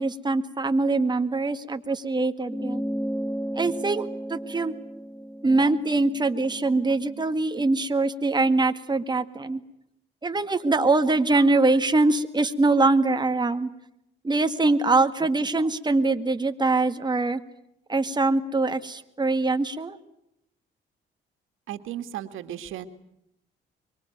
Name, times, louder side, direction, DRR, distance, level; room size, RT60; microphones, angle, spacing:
voice 1, 0.0-2.8 3.5-4.7 5.4-9.6 10.2-13.7 14.2-17.4 17.9-20.0, right 3 dB, 20° right, 8 dB, 1.9 m, -23 dB
sound 1, 2.5-7.3, equal, 5° left, 1.5 m, -34 dB
voice 2, 21.7-22.9, right 11 dB, 90° right, 8 dB, 2.1 m, -35 dB
25.0 x 24.0 x 9.3 m, 0.81 s
cardioid pair, 90°, 20 cm